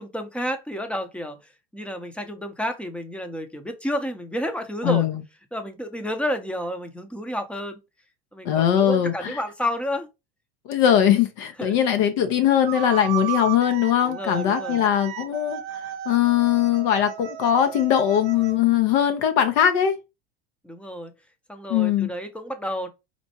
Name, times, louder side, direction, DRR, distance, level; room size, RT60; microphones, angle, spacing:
voice 1, 0.0-1.4 1.7-5.1 5.5-7.8 8.3-10.1 11.6-11.9 14.0-14.9 20.6-21.1 21.5-22.9, equal, 5° left, 0.7 m, -30 dB
voice 2, 4.8-5.2 8.4-9.4 10.7-15.6 16.1-19.9 21.7-22.1, left 10 dB, 60° left, 0.8 m, -20 dB
sound 1, 12.7-18.6, right 12 dB, 50° right, 0.7 m, -34 dB
4.3 x 2.1 x 2.8 m
hypercardioid pair, 95°, 31 cm